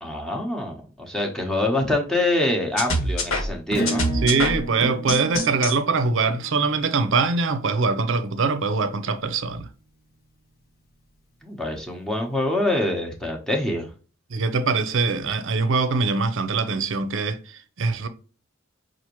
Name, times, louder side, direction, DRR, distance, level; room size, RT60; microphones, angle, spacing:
voice 1, 0.0-4.0 11.4-13.9, left 1 dB, 5° left, 0.9 m, -25 dB
sound 1, 2.8-5.8, left 1 dB, 80° left, 1.4 m, -25 dB
Acoustic guitar / Strum, 3.7-9.0, right 1 dB, 50° left, 0.9 m, -34 dB
voice 2, 4.2-9.7 14.3-18.1, right 4 dB, 65° right, 0.6 m, -23 dB
5.7 x 2.5 x 3.0 m
head